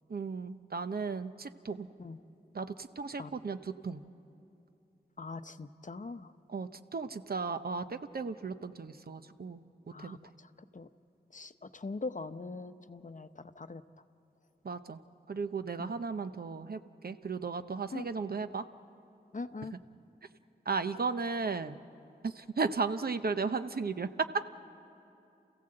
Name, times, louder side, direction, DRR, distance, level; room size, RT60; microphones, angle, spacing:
voice 1, 0.1-1.9 2.5-4.0 6.5-9.6 10.0-10.2 14.6-15.0 15.3-18.7 20.7-21.8 22.2-24.4, right 4 dB, 60° right, 10 dB, 0.8 m, -35 dB
voice 2, 5.2-6.3 9.9-10.5 10.7-10.9 11.3-13.8 15.8-15.9 17.9-18.1 19.3-19.7, left 3 dB, 45° left, 10 dB, 0.8 m, -42 dB
28.5 x 15.5 x 7.7 m, 2.8 s
wide cardioid pair, 50°, 18 cm